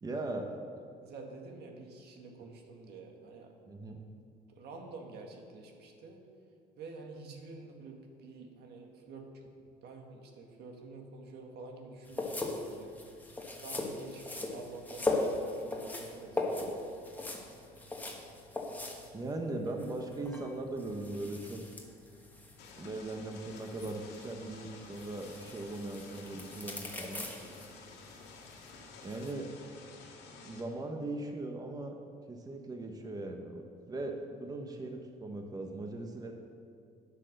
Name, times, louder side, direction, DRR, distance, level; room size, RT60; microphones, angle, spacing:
voice 1, 0.0-0.5 2.4-2.5 3.7-4.0 19.1-21.6 22.8-27.3 29.0-29.5 30.4-32.0 32.3-36.3, right 2 dB, 20° right, 3 dB, 1.1 m, -39 dB
voice 2, 1.0-3.5 4.5-6.2 6.8-12.9 13.6-16.6, right 3 dB, 75° right, 2 dB, 1.8 m, -49 dB
sound 1, 12.0-29.3, left 2 dB, 10° left, 1.5 m, -40 dB
sound 2, 22.6-30.6, left 4 dB, 85° left, 2.0 m, -52 dB
9.3 x 8.3 x 6.6 m, 2.4 s
cardioid pair, 110°, 17 cm